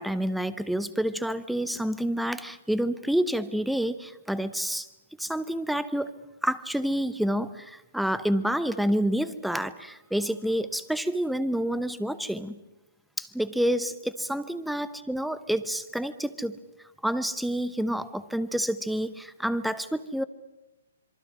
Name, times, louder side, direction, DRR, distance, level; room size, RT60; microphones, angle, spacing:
voice 1, 0.0-4.9 5.2-6.1 6.4-12.6 13.2-16.6 17.0-20.2, equal, ahead, 15 dB, 0.9 m, -28 dB
26.5 x 23.5 x 6.2 m, 0.99 s
figure-of-eight pair, 130°, 0 cm